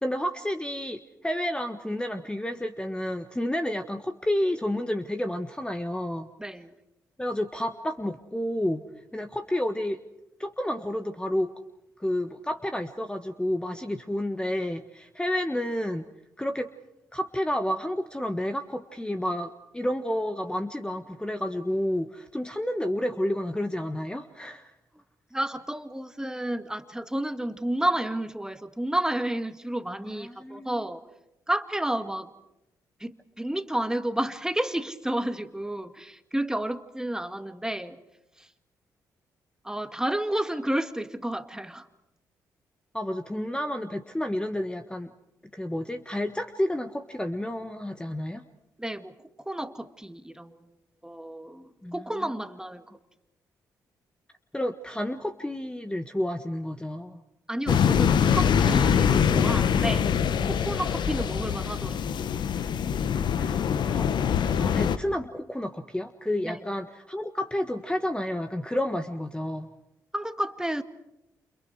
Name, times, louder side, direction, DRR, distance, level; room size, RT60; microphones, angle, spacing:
voice 1, 0.0-6.3 7.2-8.8 9.1-10.0 10.4-11.5 12.0-16.0 16.4-16.7 17.1-24.7 30.1-30.7 42.9-45.1 45.5-48.4 51.8-51.9 54.5-57.2 63.4-64.1 64.6-69.7, left 1 dB, 10° left, 7 dB, 1.5 m, -30 dB
voice 2, 6.4-6.8 25.3-31.0 31.5-32.3 33.0-38.0 38.4-38.5 39.6-41.9 48.8-50.7 51.0-52.8 57.5-60.1 60.5-62.0 66.4-66.7 70.1-70.8, right 1 dB, 5° right, 9 dB, 2.0 m, -31 dB
sound 1, 57.7-65.0, left 7 dB, 60° left, 1.3 m, -24 dB
29.0 x 29.0 x 4.9 m, 0.89 s
hypercardioid pair, 40°, 9 cm